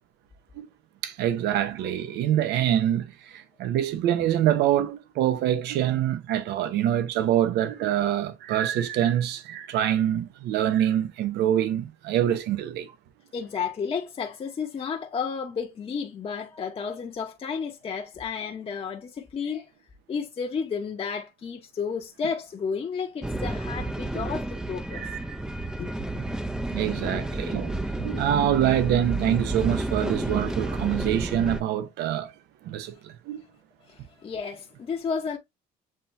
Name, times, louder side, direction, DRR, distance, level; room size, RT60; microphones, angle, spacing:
voice 1, 1.0-12.9 24.9-25.4 26.7-32.3 32.6-33.4, right 11 dB, 80° right, 0.7 m, -25 dB
voice 2, 13.3-19.7 20.1-25.0 25.8-26.2 33.8-35.4, left 6 dB, 35° left, 0.9 m, -32 dB
sound 1, 23.2-31.6, right 1 dB, 5° right, 0.5 m, -31 dB
7.6 x 2.8 x 2.5 m
cardioid pair, 110°, 17 cm